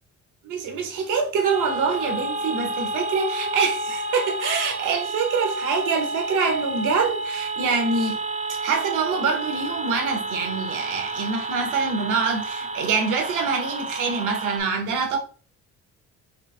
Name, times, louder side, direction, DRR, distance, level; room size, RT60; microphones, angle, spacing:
voice 1, 0.4-8.2 8.6-15.2, right 5 dB, 90° right, 0.9 m, -25 dB
sound 1, 1.4-14.6, right 2 dB, 25° right, 0.4 m, -30 dB
3.2 x 3.1 x 3.2 m
cardioid pair, 90°, 30 cm